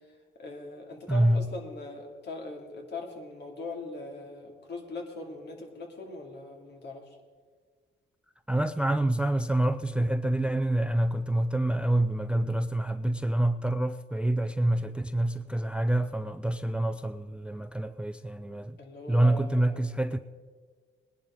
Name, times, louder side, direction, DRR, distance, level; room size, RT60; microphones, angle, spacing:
voice 1, 0.4-7.1 18.8-19.7, left 2 dB, 60° left, 2.6 m, -40 dB
voice 2, 1.1-1.5 8.5-18.8 19.1-20.2, right 1 dB, 5° right, 0.4 m, -27 dB
19.5 x 11.0 x 3.8 m
cardioid pair, 90°, 20 cm